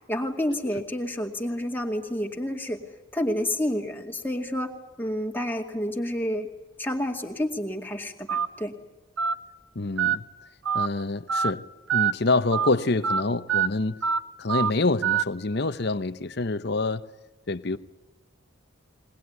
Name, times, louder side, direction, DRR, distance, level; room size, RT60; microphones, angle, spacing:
voice 1, 0.1-2.8 3.1-4.7 5.0-6.5 6.8-8.8, left 1 dB, 10° left, 2.3 m, -29 dB
Telephone, 8.3-8.5 9.2-9.3 10.0-10.2 10.7-10.9 11.3-11.5 11.9-12.1 12.5-12.7 13.0-13.2 13.5-13.7 14.0-14.2 14.5-14.7 15.0-15.2, right 7 dB, 85° right, 0.9 m, -24 dB
voice 2, 9.7-10.2 10.7-14.0 14.4-17.1 17.5-17.8, left 3 dB, 50° left, 0.9 m, -26 dB
22.0 x 20.0 x 9.5 m
head